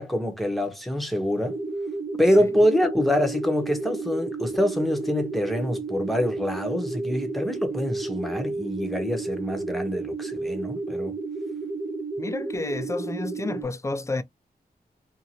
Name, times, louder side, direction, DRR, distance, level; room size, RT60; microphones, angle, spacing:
voice 1, 0.0-1.6 2.2-11.2, equal, ahead, 0.9 m, -25 dB
sound 1, 1.5-13.6, right 3 dB, 65° right, 0.9 m, -32 dB
voice 2, 12.2-14.2, left 2 dB, 15° left, 0.3 m, -30 dB
2.7 x 2.5 x 2.8 m
cardioid pair, 60°, 17 cm